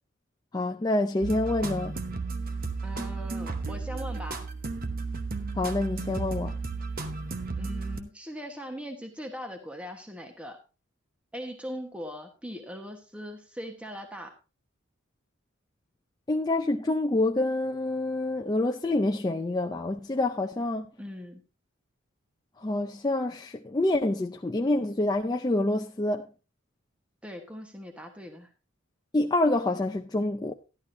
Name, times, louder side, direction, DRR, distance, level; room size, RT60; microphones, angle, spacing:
voice 1, 0.5-1.9 5.6-6.5 16.3-20.9 22.6-26.3 29.1-30.5, left 2 dB, 20° left, 0.4 m, -27 dB
sound 1, 1.2-8.0, right 4 dB, 45° right, 1.0 m, -33 dB
voice 2, 2.8-4.5 7.6-10.6 11.3-14.3 21.0-21.5 27.2-28.5, equal, 5° right, 1.2 m, -40 dB
12.0 x 11.5 x 2.7 m
head